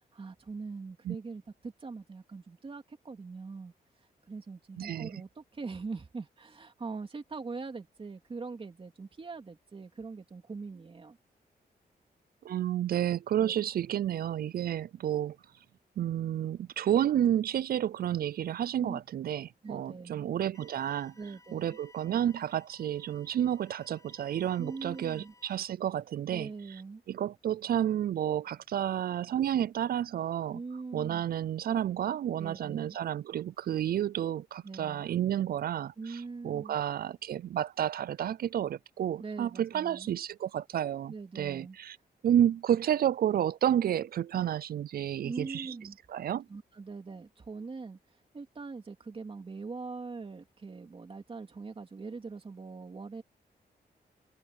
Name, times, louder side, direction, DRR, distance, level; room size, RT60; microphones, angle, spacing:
voice 1, 0.1-3.7 4.3-11.2 13.4-13.5 18.8-19.0 19.6-20.3 21.2-21.8 24.6-25.3 26.3-27.0 30.5-31.2 32.4-33.0 34.6-35.1 36.0-36.8 39.2-40.1 41.1-41.8 45.2-46.0 46.5-48.0 48.3-53.2, right 4 dB, 35° right, 3.0 m, -42 dB
voice 2, 4.8-5.1 12.4-15.4 16.0-21.1 21.5-26.5 27.1-30.6 30.9-36.2 36.4-42.0 42.2-45.7 46.1-46.4, right 10 dB, 65° right, 0.4 m, -30 dB
sound 1, 20.5-25.6, left 2 dB, 20° left, 7.7 m, -60 dB
wide cardioid pair, 150°, 17 cm